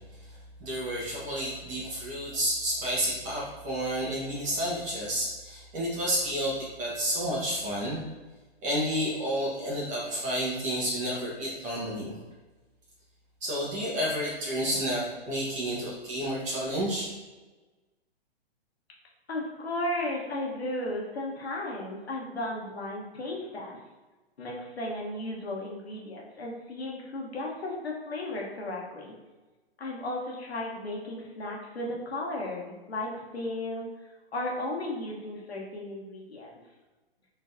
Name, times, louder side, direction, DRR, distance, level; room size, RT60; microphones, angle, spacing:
voice 1, 0.6-8.0 8.6-12.1 13.4-17.1, equal, 25° right, -6 dB, 1.2 m, -30 dB
voice 2, 19.3-23.8 24.4-29.2 29.8-33.9 34.3-36.6, left 1 dB, 75° left, -2 dB, 1.2 m, -35 dB
4.2 x 3.8 x 2.7 m, 1.2 s
figure-of-eight pair, 120°, 31 cm